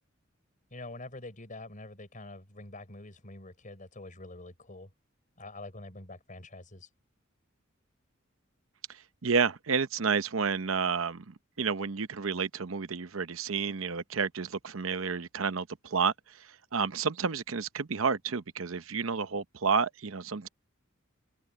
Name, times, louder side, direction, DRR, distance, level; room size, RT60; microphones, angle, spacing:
voice 1, 0.7-4.9 5.4-6.9, left 2 dB, 40° left, 5.4 m, -45 dB
voice 2, 9.2-16.1 16.7-20.5, right 5 dB, 75° right, 0.8 m, -30 dB
head